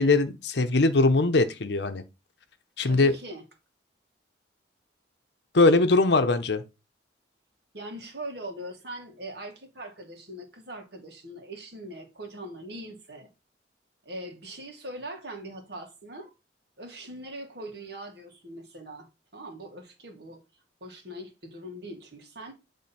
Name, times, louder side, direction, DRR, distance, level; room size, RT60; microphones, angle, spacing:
voice 1, 0.0-2.0 2.8-3.1 5.5-6.6, left 3 dB, 65° left, 0.8 m, -21 dB
voice 2, 2.8-3.4 7.7-13.3 14.0-16.3 16.8-19.1 19.3-20.4 20.8-22.5, right 1 dB, 60° right, 1.9 m, -41 dB
8.6 x 3.5 x 4.2 m
head